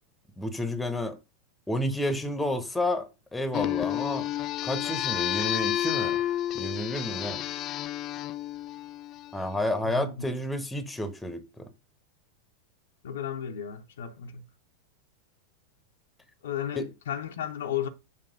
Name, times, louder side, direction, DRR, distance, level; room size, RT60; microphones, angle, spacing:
voice 1, 0.4-1.2 1.7-4.3 4.6-6.2 6.5-7.4 9.3-11.7 16.7-16.9, left 1 dB, 5° left, 1.0 m, -30 dB
sound 1, 3.5-9.6, left 13 dB, 35° left, 0.3 m, -31 dB
voice 2, 13.0-14.4 16.4-17.9, left 9 dB, 60° left, 0.7 m, -33 dB
6.8 x 3.0 x 5.1 m
figure-of-eight pair, 90°, 0 cm